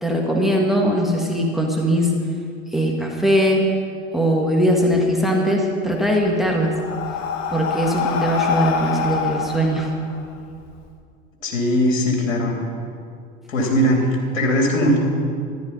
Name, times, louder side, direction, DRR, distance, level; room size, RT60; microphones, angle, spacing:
voice 1, 0.0-2.1 2.7-3.7 4.1-6.8 7.5-9.9, equal, ahead, 0 dB, 1.8 m, -20 dB
Breathing, 6.1-10.8, left 6 dB, 45° left, 1.4 m, -25 dB
voice 2, 11.4-12.5 13.5-15.0, equal, 75° left, -1 dB, 3.3 m, -19 dB
13.5 x 11.5 x 5.6 m, 2.3 s
hypercardioid pair, 95°, 39 cm